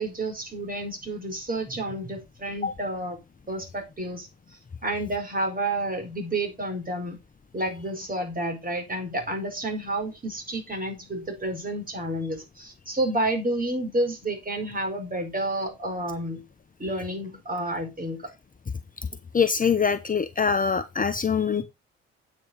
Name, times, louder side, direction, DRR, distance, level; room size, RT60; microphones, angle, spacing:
voice 1, 0.0-3.2 3.5-4.3 4.8-7.2 7.5-16.4 16.8-18.2, right 1 dB, 25° right, 4.8 m, -30 dB
voice 2, 19.3-21.6, left 6 dB, 25° left, 0.9 m, -23 dB
8.5 x 6.1 x 5.2 m
hypercardioid pair, 50°, 32 cm